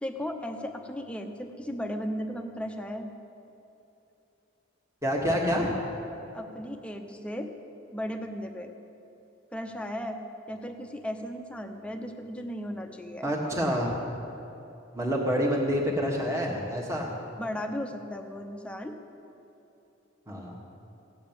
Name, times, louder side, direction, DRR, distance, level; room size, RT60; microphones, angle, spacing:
voice 1, 0.0-3.1 6.3-7.5 7.9-8.7 9.5-10.2 10.5-13.3 17.4-19.0, equal, 5° left, 5 dB, 0.8 m, -36 dB
voice 2, 5.0-5.7 13.2-14.0 14.9-17.1 20.3-20.6, equal, 15° right, -3 dB, 1.6 m, -27 dB
16.5 x 7.4 x 8.9 m, 2.9 s
head